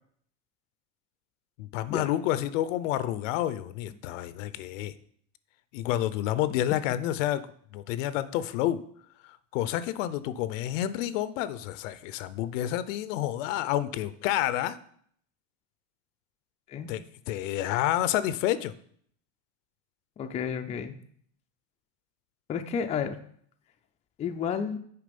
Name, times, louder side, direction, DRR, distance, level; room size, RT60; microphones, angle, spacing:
voice 1, 1.6-4.9 5.7-7.4 7.7-8.8 9.5-14.8 16.9-18.7, left 13 dB, 85° left, 15 dB, 0.6 m, -29 dB
voice 2, 20.2-20.9 22.5-23.2 24.2-24.8, left 7 dB, 20° left, 6 dB, 0.4 m, -31 dB
6.8 x 4.7 x 5.1 m, 0.63 s
supercardioid pair, 145°, 37 cm